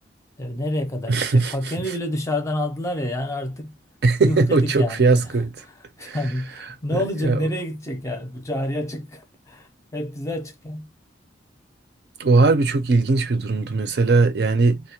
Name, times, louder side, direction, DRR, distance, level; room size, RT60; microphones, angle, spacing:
voice 1, 0.4-3.8 4.2-10.9, left 1 dB, 15° left, 0.4 m, -28 dB
voice 2, 1.1-1.5 4.0-5.5 6.0-6.2 7.2-7.4 12.2-14.8, right 3 dB, 60° right, 0.4 m, -19 dB
2.2 x 2.1 x 2.8 m
head